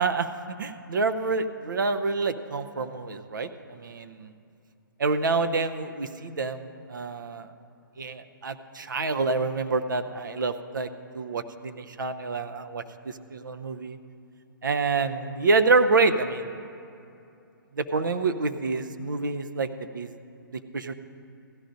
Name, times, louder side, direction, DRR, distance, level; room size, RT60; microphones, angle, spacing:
voice 1, 0.0-4.3 5.0-7.5 8.0-10.9 11.1-14.0 14.6-16.6 17.7-20.1 20.5-20.9, right 3 dB, 60° right, 9 dB, 0.6 m, -27 dB
15.5 x 12.0 x 2.6 m, 2.6 s
figure-of-eight pair, 130°, 12 cm